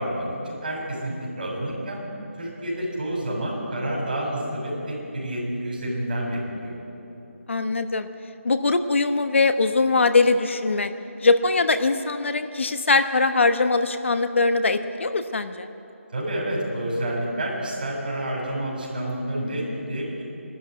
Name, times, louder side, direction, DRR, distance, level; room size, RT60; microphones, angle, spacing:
voice 1, 0.0-2.0 2.4-6.8 16.1-20.2, right 1 dB, 40° right, -2 dB, 6.6 m, -29 dB
voice 2, 7.5-8.1 8.4-10.9 11.2-15.7, left 3 dB, 55° left, 9 dB, 1.1 m, -21 dB
22.5 x 13.0 x 9.3 m, 2.9 s
figure-of-eight pair, 165°, 8 cm